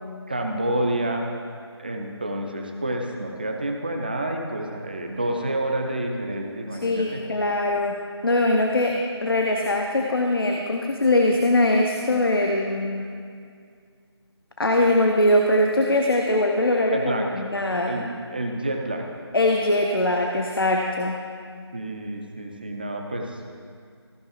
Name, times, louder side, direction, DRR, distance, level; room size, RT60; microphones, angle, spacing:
voice 1, 0.3-1.3 1.8-7.2 16.9-17.4 17.8-18.1 18.3-19.0 21.7-23.4, right 1 dB, 20° right, 2 dB, 0.6 m, -28 dB
voice 2, 6.8-13.1 14.6-17.9 19.3-21.2, left 1 dB, 55° left, 1 dB, 0.8 m, -22 dB
15.0 x 5.3 x 5.0 m, 2.2 s
figure-of-eight pair, 160°, 14 cm